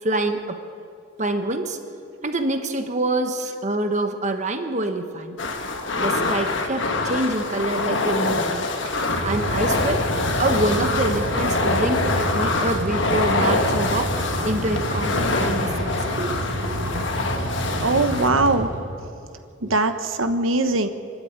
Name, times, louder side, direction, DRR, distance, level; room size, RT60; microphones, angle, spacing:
voice 1, 0.0-0.6 1.2-1.8 2.2-5.4 6.0-8.7 9.2-10.1 10.4-14.1 14.4-16.9 19.6-19.7, right 2 dB, 35° right, 7 dB, 1.2 m, -26 dB
sound 1, 5.4-18.3, left 3 dB, 65° left, 1.6 m, -25 dB
Mechanical fan, 8.7-19.3, right 1 dB, 60° right, 3.3 m, -29 dB
voice 2, 17.8-18.7 19.6-20.9, right 2 dB, 90° right, 7 dB, 1.2 m, -21 dB
24.5 x 12.5 x 9.6 m, 2.5 s
head